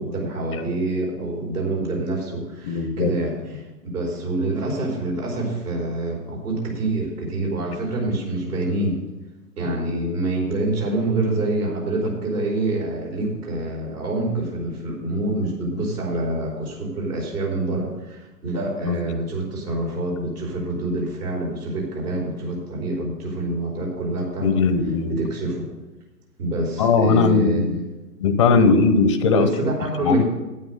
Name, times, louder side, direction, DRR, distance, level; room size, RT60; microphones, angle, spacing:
voice 1, 0.0-3.6 3.9-9.0 9.6-24.6 25.1-25.6 26.4-27.6 28.6-28.8 29.3-30.2, right 2 dB, 65° right, -1 dB, 4.8 m, -26 dB
voice 2, 2.6-3.1 9.9-10.0 18.8-19.0 24.4-25.2 26.8-27.8 28.2-29.5 30.0-30.2, left 4 dB, 20° left, 10 dB, 0.5 m, -19 dB
9.4 x 9.0 x 6.4 m, 1.1 s
hypercardioid pair, 135°, 48 cm